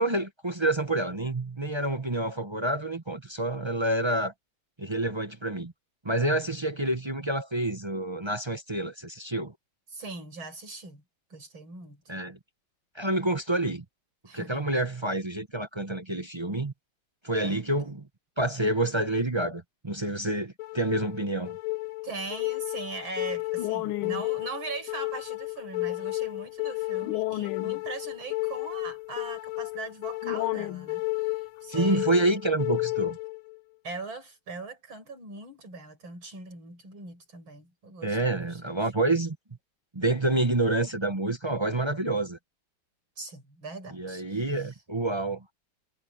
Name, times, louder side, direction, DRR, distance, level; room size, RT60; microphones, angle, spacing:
voice 1, 0.0-4.3 4.8-5.7 6.0-9.5 12.1-12.4 12.9-13.8 14.3-16.7 17.2-18.0 18.4-21.6 31.7-33.2 38.0-39.4 39.9-42.4 43.9-45.4, right 2 dB, 25° right, 0.6 m, -28 dB
voice 2, 9.9-11.0 11.3-12.0 14.3-14.7 17.4-17.6 22.0-32.1 33.8-38.7 43.2-44.7, right 3 dB, 70° right, 7.2 m, -40 dB
sound 1, 20.6-33.6, left 20 dB, 85° left, 1.6 m, -32 dB
omnidirectional pair, 2.3 m